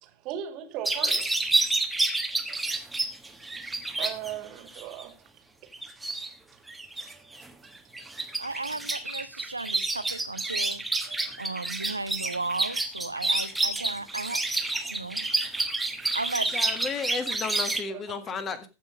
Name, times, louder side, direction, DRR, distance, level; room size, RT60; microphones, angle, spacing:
voice 1, 0.0-1.3 4.0-5.2 6.5-6.6 7.1-7.6 8.3-8.4 11.0-11.3 13.1-13.2 13.8-13.9 14.7-15.1 15.6-15.8 17.9-18.0, right 11 dB, 40° right, 2.0 m, -39 dB
sound 1, 0.8-4.3 4.7-5.0 5.7-6.3 6.7-7.5 7.7-17.8, right 2 dB, 5° right, 1.3 m, -29 dB
voice 2, 8.4-10.8 11.4-14.4 14.9-15.3 16.1-16.6, right 2 dB, 85° right, 0.7 m, -35 dB
voice 3, 16.5-18.7, left 5 dB, 25° left, 1.7 m, -33 dB
15.0 x 5.7 x 5.1 m
figure-of-eight pair, 90°, 0 cm